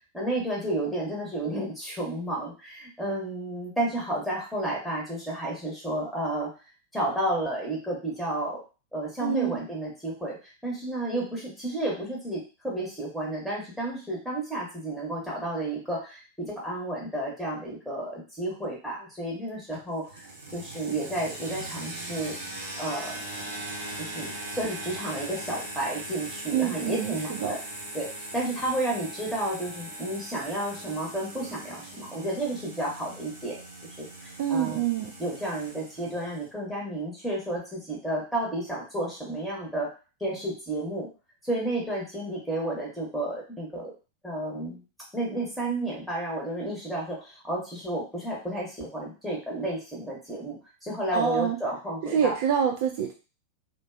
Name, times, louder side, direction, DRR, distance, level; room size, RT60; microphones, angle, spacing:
voice 1, 0.1-6.5 6.9-8.6 8.9-20.3 20.5-22.4 22.8-23.2 24.0-27.6 27.9-33.6 34.0-34.8 35.2-39.9 40.2-41.1 41.4-43.9 44.2-44.8 45.1-52.3, right 1 dB, ahead, -4 dB, 1.0 m, -31 dB
voice 2, 9.2-9.6 26.5-27.2 27.4-27.5 34.4-35.1 51.1-51.6 52.1-53.1, right 8 dB, 50° right, 3 dB, 0.3 m, -26 dB
sound 1, 19.7-36.5, right 1 dB, 70° right, 0.8 m, -40 dB
2.4 x 2.2 x 2.3 m, 0.33 s
figure-of-eight pair, 90°, 0 cm